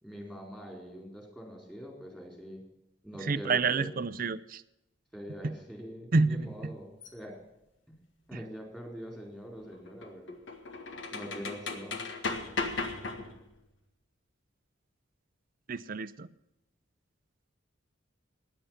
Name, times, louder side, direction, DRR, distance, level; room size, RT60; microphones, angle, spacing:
voice 1, 0.0-2.6 3.0-4.0 5.1-7.4 7.9-8.0 8.3-10.4 11.1-12.0, equal, 5° left, 1 dB, 4.2 m, -43 dB
voice 2, 3.3-4.6 6.1-6.5 15.7-16.3, right 4 dB, 45° right, 16 dB, 0.6 m, -28 dB
sound 1, 7.0-7.1 9.5-13.6, left 3 dB, 65° left, 1.8 m, -37 dB
16.0 x 10.5 x 5.8 m, 0.89 s
head